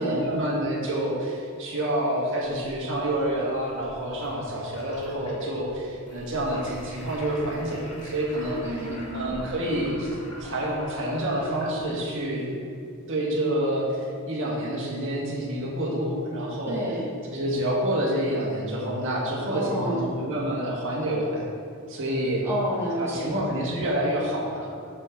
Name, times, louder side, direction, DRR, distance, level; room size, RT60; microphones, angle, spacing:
voice 1, 0.0-8.6 9.1-10.1 10.4-12.6 13.1-16.8 17.3-21.4 21.9-22.4 23.0-24.7, right 1 dB, 60° right, -4 dB, 1.7 m, -28 dB
sound 1, 2.4-12.2, equal, 85° left, 1.7 m, -43 dB
voice 2, 8.6-9.4 16.7-17.1 19.5-20.0 22.4-23.3, right 1 dB, 10° right, -7 dB, 1.6 m, -30 dB
7.7 x 7.6 x 3.8 m, 2.5 s
head